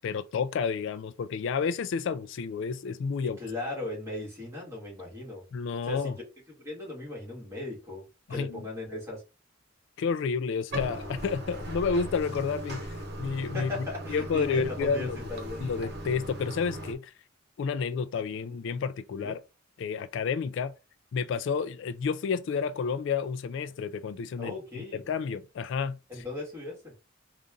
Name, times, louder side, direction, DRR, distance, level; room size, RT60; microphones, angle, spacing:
voice 1, 0.0-3.4 5.5-6.1 8.3-8.6 10.0-13.7 14.1-15.2 15.6-17.1 17.6-19.4 19.8-20.7 21.1-24.5 24.9-26.0, left 5 dB, 70° left, 0.3 m, -30 dB
voice 2, 3.2-5.4 5.8-6.2 6.6-8.0 8.3-9.2 13.5-15.6 18.4-18.6 19.2-19.4 24.4-25.0 26.1-26.9, left 2 dB, 15° right, 2.1 m, -38 dB
Bathtub (filling or washing), 10.7-16.9, right 1 dB, 55° right, 1.0 m, -38 dB
3.9 x 2.5 x 3.6 m
head